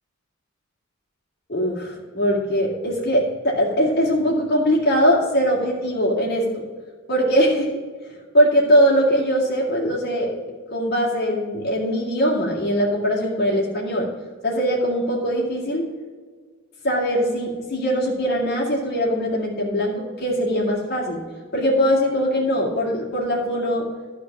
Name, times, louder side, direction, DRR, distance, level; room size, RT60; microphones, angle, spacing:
voice 1, 1.5-6.6 7.1-7.7 8.3-10.3 10.7-14.1 14.4-15.9 16.8-21.2 21.5-23.9, equal, 45° left, -5 dB, 2.6 m, -21 dB
12.0 x 4.6 x 7.3 m, 1.5 s
head